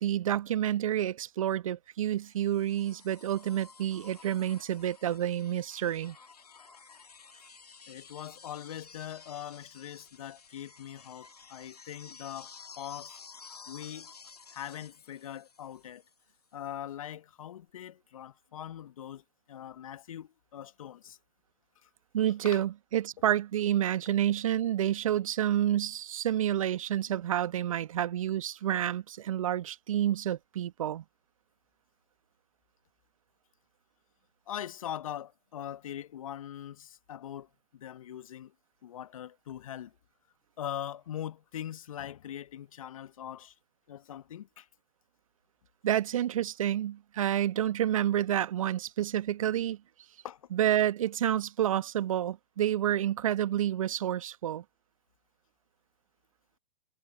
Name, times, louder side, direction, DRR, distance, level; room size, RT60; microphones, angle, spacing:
voice 1, 0.0-6.2 22.1-31.0 45.8-49.8 50.5-54.6, right 11 dB, 60° right, 1.4 m, -29 dB
sound 1, 2.2-16.2 17.7-17.8, left 5 dB, 75° left, 1.9 m, -53 dB
voice 2, 7.9-13.2 13.7-14.1 14.5-16.0 16.5-21.2 21.8-21.9 22.4-22.6 34.5-38.5 38.8-40.0 40.6-43.5 43.9-44.7 50.2-50.5, left 10 dB, 60° left, 1.3 m, -42 dB
figure-of-eight pair, 110°, 20 cm